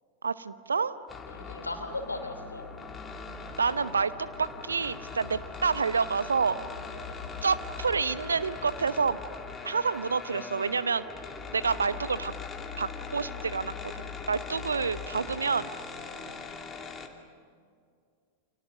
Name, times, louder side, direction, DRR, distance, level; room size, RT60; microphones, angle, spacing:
voice 1, 0.2-0.9 3.6-4.1 4.4-6.6 7.4-9.2 9.6-11.0 11.5-12.3 12.8-13.7 14.3-15.7, right 5 dB, 75° right, 15 dB, 0.9 m, -28 dB
sound 1, 1.1-17.1, left 5 dB, 20° left, 2.6 m, -40 dB
voice 2, 1.3-2.7 6.9-7.2 11.5-11.6 14.7-15.2 16.0-16.5, left 2 dB, 80° left, 6 dB, 3.0 m, -40 dB
30.0 x 26.5 x 6.7 m, 2.2 s
figure-of-eight pair, 90°, 0 cm